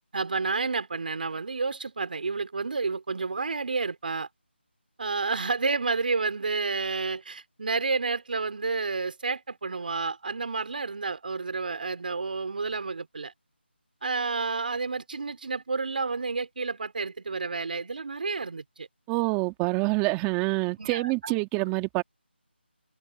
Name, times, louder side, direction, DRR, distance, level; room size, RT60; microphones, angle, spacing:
voice 1, 0.1-4.3 5.0-13.3 14.0-18.9 20.8-21.3, right 4 dB, 50° right, 4.0 m, -30 dB
voice 2, 19.1-22.0, right 25 dB, 10° right, 2.3 m, -26 dB
figure-of-eight pair, 165°, 6 cm